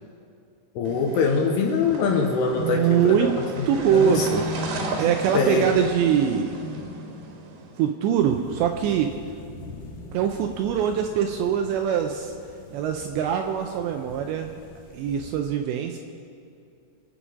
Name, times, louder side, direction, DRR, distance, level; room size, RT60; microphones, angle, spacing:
voice 1, 0.8-3.3 3.6-3.7 3.9-4.3 5.3-5.6, left 4 dB, 70° left, 1 dB, 2.8 m, -23 dB
sound 1, 0.8-7.8, right 1 dB, 65° right, 3.2 m, -34 dB
voice 2, 2.6-3.4 3.7-4.5 5.0-6.6 7.8-9.1 10.1-12.3 12.7-14.5 14.9-16.0, right 8 dB, 85° right, 4 dB, 2.6 m, -23 dB
sound 2, 8.1-15.3, left 2 dB, 45° left, 2.5 m, -44 dB
24.5 x 8.7 x 5.1 m, 2.5 s
omnidirectional pair, 5.7 m